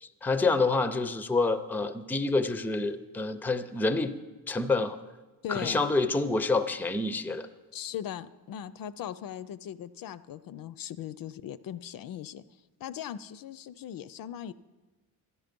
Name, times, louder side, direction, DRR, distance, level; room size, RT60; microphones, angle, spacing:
voice 1, 0.0-4.1 4.5-5.0 5.5-7.5, left 3 dB, 5° left, 11 dB, 0.4 m, -27 dB
voice 2, 5.4-5.8 7.7-12.4 12.8-14.5, left 10 dB, 65° left, 15 dB, 0.5 m, -39 dB
12.5 x 11.0 x 5.2 m, 1.2 s
wide cardioid pair, 155°, 37 cm